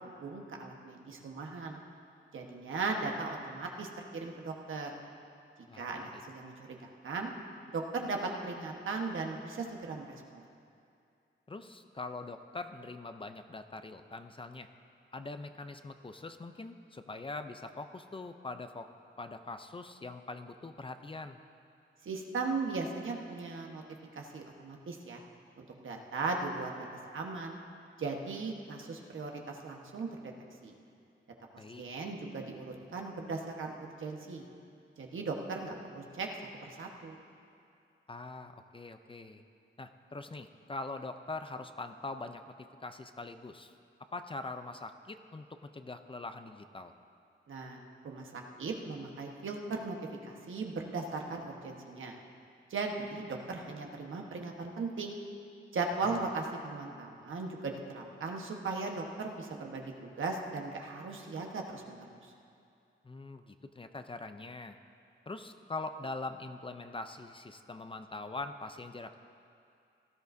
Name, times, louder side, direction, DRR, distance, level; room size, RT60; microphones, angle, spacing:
voice 1, 0.2-1.8 2.3-4.9 5.7-7.3 7.7-10.5 22.0-23.8 24.1-25.2 25.6-26.9 27.1-27.6 28.0-30.3 30.6-30.7 31.5-34.4 35.0-36.3 36.6-37.2 47.5-47.8 48.0-50.0 50.2-52.1 52.7-55.2 55.7-62.1, right 3 dB, 75° right, 1 dB, 1.3 m, -38 dB
voice 2, 5.7-6.2 11.5-14.7 15.1-18.9 19.2-21.4 31.6-31.8 38.1-39.4 39.8-42.5 42.8-43.7 44.1-46.9 56.0-56.2 63.0-64.8 65.3-69.2, left 3 dB, 25° left, 8 dB, 0.5 m, -43 dB
17.5 x 12.5 x 2.7 m, 2.5 s
wide cardioid pair, 90°, 21 cm